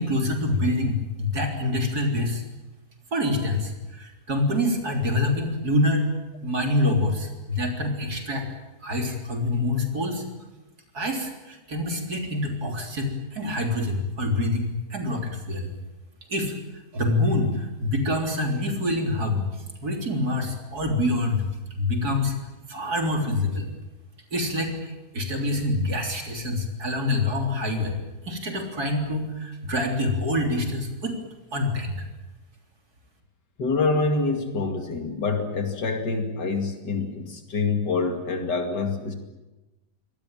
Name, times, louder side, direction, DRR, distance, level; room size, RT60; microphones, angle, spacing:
voice 1, 0.0-2.4 3.1-6.1 6.4-8.5 8.8-10.2 10.9-15.7 16.3-16.6 16.9-19.4 19.8-21.4 21.8-22.3 22.7-23.7 24.3-27.9 28.2-31.2 31.5-32.1, left 1 dB, 65° right, 3 dB, 4.1 m, -26 dB
voice 2, 33.6-39.1, left 3 dB, 85° left, 5 dB, 2.9 m, -26 dB
25.0 x 18.0 x 9.0 m, 1.1 s
omnidirectional pair, 1.8 m